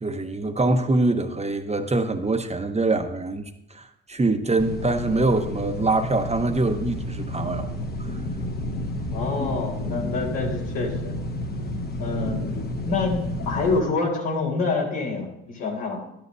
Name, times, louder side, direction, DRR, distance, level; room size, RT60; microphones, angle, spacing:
voice 1, 0.0-7.7 8.0-8.1, right 2 dB, 20° right, 6 dB, 1.0 m, -24 dB
sound 1, 4.6-13.8, left 1 dB, 30° left, 1.1 m, -30 dB
voice 2, 9.1-11.1 12.0-12.4 12.9-16.0, left 3 dB, 80° left, -3 dB, 4.2 m, -26 dB
13.0 x 12.0 x 2.7 m, 0.82 s
supercardioid pair, 65°, 31 cm